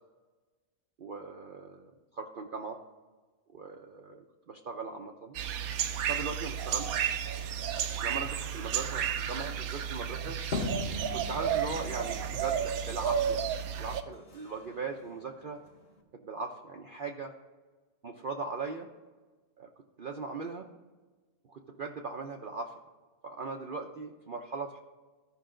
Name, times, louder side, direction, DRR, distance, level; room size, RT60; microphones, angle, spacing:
voice 1, 1.0-1.9 2.1-2.8 3.5-5.4 6.1-7.0 8.0-10.4 11.1-13.5 13.8-15.6 16.1-17.3 18.0-18.9 19.6-19.7 20.0-20.7 21.5-22.7 23.2-24.8, right 4 dB, 50° right, 2 dB, 0.6 m, -39 dB
sound 1, 5.3-14.0, right 8 dB, 75° right, 1.1 m, -32 dB
sound 2, 10.5-16.0, left 2 dB, 45° left, 1.2 m, -40 dB
14.0 x 5.5 x 3.8 m, 1.3 s
omnidirectional pair, 1.6 m